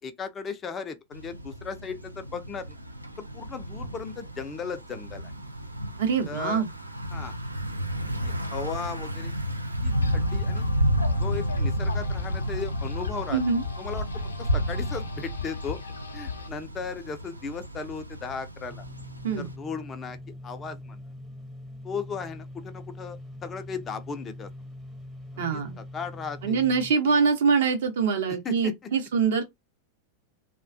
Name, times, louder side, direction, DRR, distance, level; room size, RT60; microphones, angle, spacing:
voice 1, 0.0-2.8 3.3-5.3 6.3-6.6 7.1-7.3 8.2-9.3 9.8-10.7 11.2-13.4 13.8-14.0 14.4-15.8 16.1-18.8 19.4-20.2 20.4-21.0 21.8-24.5 25.3-26.6 27.1-27.2 28.4-28.7, left 5 dB, 25° left, 0.4 m, -36 dB
Thunder / Bicycle, 1.1-19.5, equal, 85° right, 0.3 m, -31 dB
voice 2, 6.0-6.7 13.3-13.6 19.2-19.5 25.4-25.7 26.4-29.4, right 5 dB, 60° right, 0.7 m, -24 dB
sound 1, 9.9-16.5, left 6 dB, 75° left, 0.6 m, -38 dB
sound 2, 18.7-26.9, left 1 dB, 20° right, 0.7 m, -43 dB
2.3 x 2.2 x 2.5 m
figure-of-eight pair, 90°, 0 cm